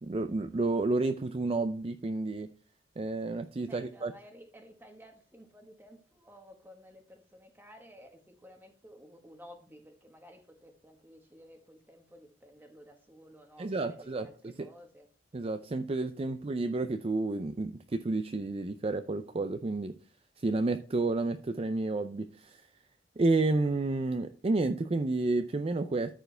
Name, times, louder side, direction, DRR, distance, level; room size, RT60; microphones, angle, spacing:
voice 1, 0.0-2.5 3.0-4.1 13.6-14.7 15.3-19.9 20.4-22.7 23.2-26.1, right 2 dB, 30° right, 0.4 m, -30 dB
voice 2, 3.7-15.1 16.2-16.3, equal, 10° right, 1.4 m, -54 dB
13.5 x 4.6 x 3.4 m
head